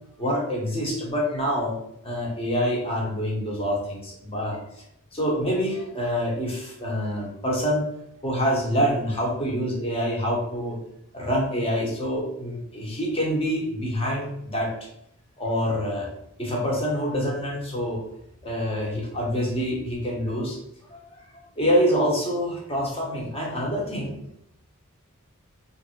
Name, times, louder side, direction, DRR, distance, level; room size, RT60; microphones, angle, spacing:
voice 1, 0.2-1.7 2.0-4.6 5.1-7.9 8.2-10.8 11.1-14.7 15.4-16.1 16.4-18.0 18.4-20.6 20.9-24.2, equal, 25° left, -2 dB, 1.1 m, -26 dB
3.6 x 2.7 x 4.4 m, 0.75 s
head